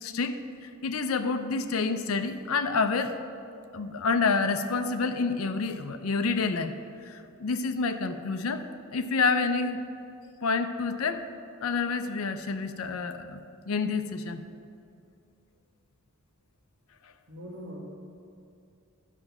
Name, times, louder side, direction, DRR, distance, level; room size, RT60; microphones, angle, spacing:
voice 1, 0.0-3.1 3.7-6.7 7.1-8.6 8.9-9.8 10.4-11.2 11.6-14.5, left 4 dB, 85° left, 8 dB, 0.5 m, -28 dB
voice 2, 17.3-17.8, equal, 55° right, -2 dB, 1.9 m, -41 dB
11.0 x 5.3 x 5.9 m, 2.5 s
head